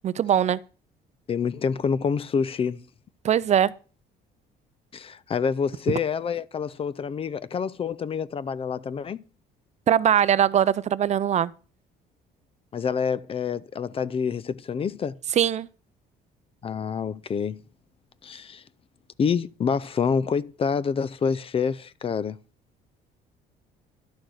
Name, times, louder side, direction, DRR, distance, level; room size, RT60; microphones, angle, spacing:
voice 1, 0.0-0.6 3.2-3.7 9.9-11.5 15.4-15.7, right 9 dB, 40° right, 0.5 m, -21 dB
voice 2, 1.3-2.8 4.9-9.2 12.7-15.1 16.6-17.6 18.2-18.6 19.2-22.4, left 6 dB, 35° left, 0.5 m, -27 dB
11.5 x 6.4 x 6.3 m
cardioid pair, 110°, 17 cm